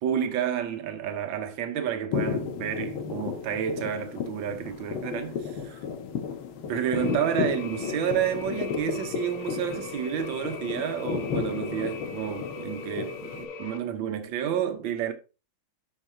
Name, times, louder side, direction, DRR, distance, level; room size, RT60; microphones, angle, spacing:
voice 1, 0.0-5.8 6.7-15.1, right 9 dB, 70° right, 1.6 m, -30 dB
sound 1, 2.1-13.5, left 7 dB, 85° left, 1.9 m, -33 dB
sound 2, 7.0-13.8, left 5 dB, 70° left, 1.4 m, -40 dB
12.5 x 4.7 x 2.7 m
omnidirectional pair, 2.2 m